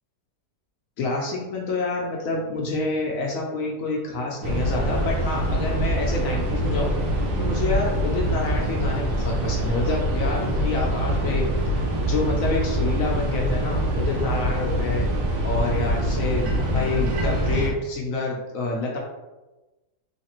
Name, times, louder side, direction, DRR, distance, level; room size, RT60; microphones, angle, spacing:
voice 1, 1.0-6.9 7.4-11.4 12.1-15.0 15.4-19.0, left 3 dB, 65° left, -2 dB, 0.9 m, -28 dB
sound 1, 4.4-17.7, right 1 dB, 75° right, 1.4 m, -24 dB
3.2 x 3.2 x 2.9 m, 1.1 s
omnidirectional pair, 1.8 m